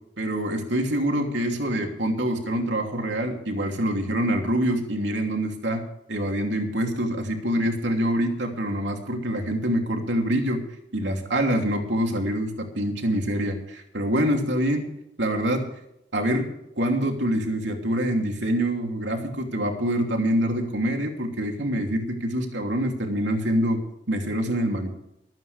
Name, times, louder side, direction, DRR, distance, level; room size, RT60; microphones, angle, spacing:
voice 1, 0.2-5.8 6.1-10.6 10.9-14.9 15.2-15.7 16.1-16.4 16.8-23.8 24.1-24.9, equal, 80° right, 2 dB, 2.9 m, -25 dB
25.5 x 9.3 x 3.4 m, 0.82 s
head